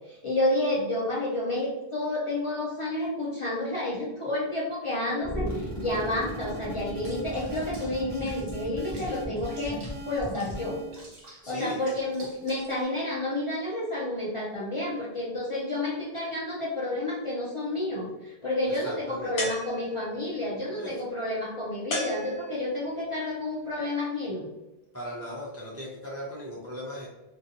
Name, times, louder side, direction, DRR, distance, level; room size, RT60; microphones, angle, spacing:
voice 1, 0.1-10.8 11.5-24.5, left 1 dB, 45° left, -6 dB, 0.4 m, -30 dB
sound 1, 5.2-11.0, equal, 20° left, 0.8 m, -36 dB
Water / Bathtub (filling or washing), 7.0-12.8, right 2 dB, 45° right, 0.9 m, -50 dB
voice 2, 11.4-11.8 18.6-19.4 20.7-20.9 24.9-27.1, equal, 25° right, -5 dB, 0.3 m, -38 dB
sound 2, 19.4-20.2 21.9-22.9, left 2 dB, 65° left, 0.8 m, -34 dB
2.5 x 2.3 x 2.7 m, 1.0 s
omnidirectional pair, 1.1 m